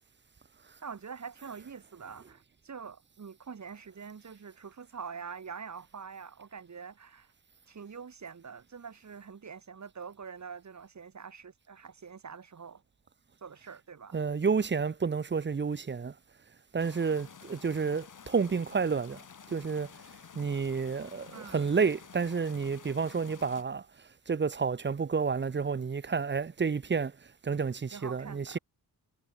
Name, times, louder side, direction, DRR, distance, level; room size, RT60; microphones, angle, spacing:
voice 1, 0.8-7.3 7.7-12.8 13.4-14.2 21.3-21.7 27.9-28.6, right 6 dB, 45° right, 3.5 m, -45 dB
voice 2, 14.1-16.1 16.7-19.2 19.5-19.9 20.3-23.8 24.3-27.1 27.4-28.6, right 5 dB, 30° right, 0.9 m, -30 dB
sound 1, 16.8-23.6, left 7 dB, 50° left, 3.0 m, -51 dB
cardioid pair, 95°, 40 cm